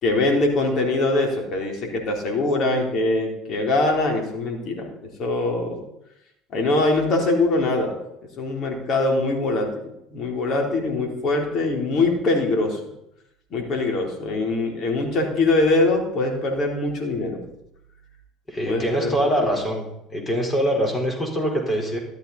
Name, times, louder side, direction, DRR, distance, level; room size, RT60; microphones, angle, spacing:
voice 1, 0.0-4.9 5.2-5.8 6.5-7.9 8.4-9.7 10.1-12.8 13.5-17.4 18.6-19.6, left 2 dB, 50° left, 1 dB, 3.7 m, -23 dB
voice 2, 18.5-19.9 20.1-22.0, equal, 25° left, 1 dB, 4.3 m, -23 dB
13.5 x 11.5 x 4.2 m, 0.81 s
hypercardioid pair, 70°, 0 cm